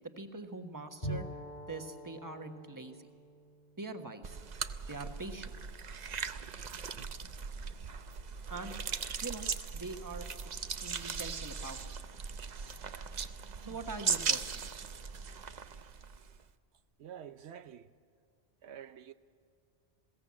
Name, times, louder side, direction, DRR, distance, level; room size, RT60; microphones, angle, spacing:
voice 1, 0.2-1.3 1.7-3.1 3.8-4.4 4.9-5.6 8.5-8.8 9.2-9.5 9.7-10.3 10.5-11.8 13.7-14.5, right 3 dB, 20° right, 1.2 m, -43 dB
Bowed string instrument, 1.0-4.8, right 1 dB, 40° left, 2.6 m, -45 dB
sound 1, 4.2-16.4, right 6 dB, 45° right, 0.7 m, -39 dB
voice 2, 17.0-17.9 18.6-19.1, right 9 dB, 80° right, 1.0 m, -48 dB
21.0 x 16.5 x 8.6 m
omnidirectional pair, 1.1 m